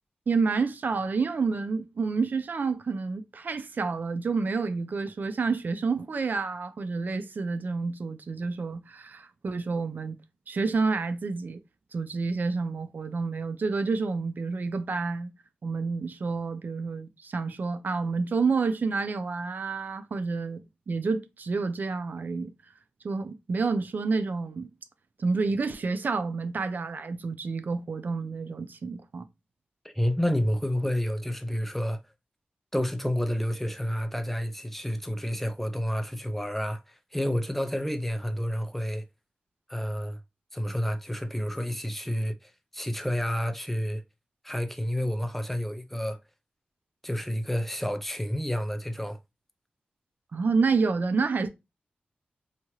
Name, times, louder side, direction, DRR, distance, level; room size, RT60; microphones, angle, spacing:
voice 1, 0.3-10.2 10.5-11.6 11.9-15.3 15.6-22.5 23.0-24.7 25.2-29.3 50.3-51.5, right 4 dB, 60° right, 0.4 m, -29 dB
voice 2, 29.8-32.0 32.7-39.0 39.7-40.2 40.5-44.0 44.4-46.2 47.0-49.2, equal, 5° left, 0.4 m, -30 dB
2.8 x 2.3 x 2.9 m
wide cardioid pair, 70°, 4 cm